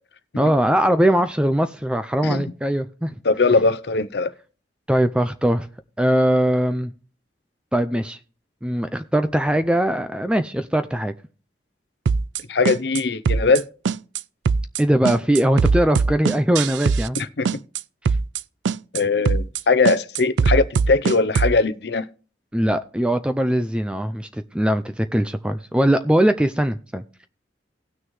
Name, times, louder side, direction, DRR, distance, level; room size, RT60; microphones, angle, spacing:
voice 1, 0.4-3.2 4.9-5.7 6.0-6.9 7.7-8.2 8.6-11.1 14.8-17.2 22.5-27.3, right 1 dB, 5° right, 0.4 m, -21 dB
voice 2, 3.2-4.3 12.5-13.6 17.2-17.5 18.9-22.0, left 3 dB, 65° left, 0.7 m, -20 dB
sound 1, 12.1-12.4 12.7-13.0 13.3-13.6 13.9-14.2 14.5-14.8 15.1-17.2 17.5-17.8 18.1-18.4 18.7-19.0 19.3-19.6 19.9-21.6, right 5 dB, 80° right, 0.4 m, -21 dB
18.5 x 6.3 x 3.1 m
head